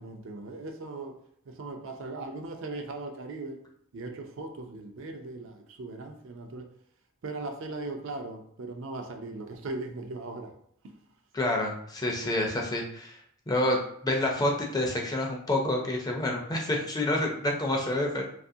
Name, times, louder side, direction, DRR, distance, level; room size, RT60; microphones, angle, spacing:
voice 1, 0.0-3.6 3.9-6.7 7.2-10.5 10.8-11.0 12.2-12.3, right 2 dB, 65° right, 4 dB, 0.4 m, -39 dB
voice 2, 11.3-13.2 13.5-18.2, left 1 dB, 20° left, 0 dB, 0.4 m, -28 dB
2.6 x 2.4 x 2.7 m, 0.66 s
head